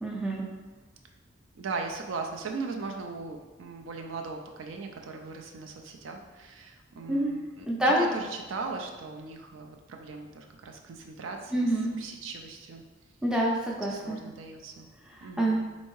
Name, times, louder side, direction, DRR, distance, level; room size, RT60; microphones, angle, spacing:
voice 1, 0.0-0.4 7.1-7.3 7.7-8.1 11.5-11.9 13.2-14.2 15.1-15.6, right 1 dB, 5° right, -3 dB, 0.4 m, -27 dB
voice 2, 1.6-12.8 13.9-14.9 15.2-15.6, right 4 dB, 65° right, 3 dB, 0.4 m, -39 dB
4.3 x 2.7 x 3.0 m, 1.2 s
head